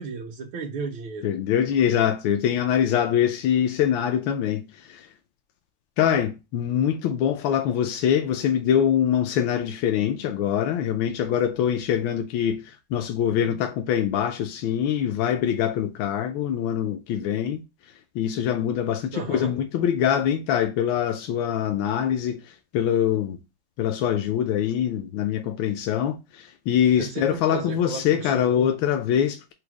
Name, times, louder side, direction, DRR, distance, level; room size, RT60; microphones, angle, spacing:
voice 1, 0.0-1.3 19.1-19.5 27.0-28.7, right 4 dB, 85° right, 1.5 m, -34 dB
voice 2, 1.2-5.1 6.0-17.6 18.1-23.4 23.8-29.5, left 9 dB, 85° left, 1.3 m, -24 dB
5.0 x 2.1 x 4.6 m
omnidirectional pair, 2.1 m